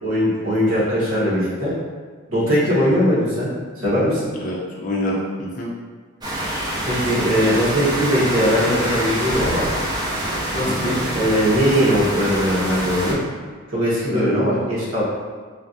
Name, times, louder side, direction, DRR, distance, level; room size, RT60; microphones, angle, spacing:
voice 1, 0.0-1.7 2.3-3.5 3.8-4.3 6.8-9.6 10.5-13.2 13.7-15.0, equal, 85° right, -9 dB, 1.3 m, -20 dB
voice 2, 4.4-5.7 8.8-9.0 10.7-11.0 14.1-14.6, left 1 dB, 40° left, -3 dB, 0.5 m, -27 dB
sound 1, 6.2-13.1, right 1 dB, 20° right, 0.4 m, -25 dB
3.2 x 2.2 x 2.6 m, 1.6 s
head